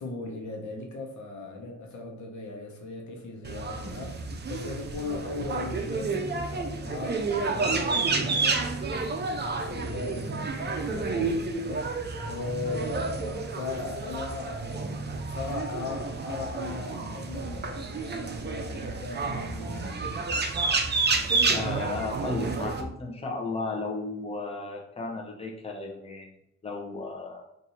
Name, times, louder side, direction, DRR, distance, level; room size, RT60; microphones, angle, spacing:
voice 1, 0.0-7.3 7.5-20.3, left 3 dB, 80° left, 0.9 m, -38 dB
sound 1, 3.4-22.8, right 3 dB, 35° right, 0.5 m, -30 dB
voice 2, 21.5-26.3 26.6-27.4, left 3 dB, 20° left, 0.8 m, -34 dB
2.7 x 2.6 x 4.3 m
cardioid pair, 75°, 29 cm